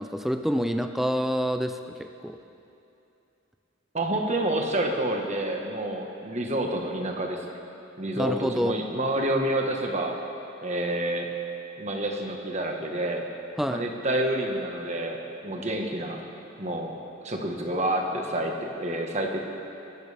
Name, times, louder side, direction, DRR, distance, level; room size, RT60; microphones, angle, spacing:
voice 1, 0.0-2.4 8.2-8.7 13.6-13.9, equal, ahead, 7 dB, 0.4 m, -27 dB
voice 2, 3.9-7.4 8.0-10.2 10.6-11.3 11.8-13.3 13.7-16.2 16.6-16.9 17.2-19.4, right 1 dB, 35° right, 2 dB, 1.4 m, -28 dB
23.5 x 14.0 x 3.5 m, 2.8 s
head